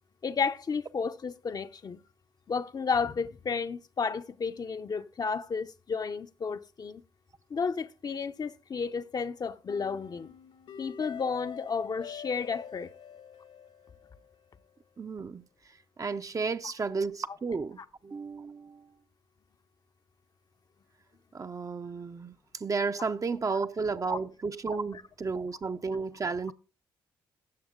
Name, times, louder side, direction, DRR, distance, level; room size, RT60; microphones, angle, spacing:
voice 1, 0.2-2.0 2.5-7.0 7.5-10.3 10.8-12.9 17.3-17.4 23.5-23.6 24.1-24.2, left 5 dB, 40° left, 0.7 m, -32 dB
sound 1, 9.7-14.7, left 8 dB, 70° left, 1.5 m, -46 dB
voice 2, 15.0-15.4 16.0-18.9 21.3-26.5, right 4 dB, 35° right, 0.6 m, -33 dB
15.5 x 6.3 x 3.7 m
supercardioid pair, 55°, 10 cm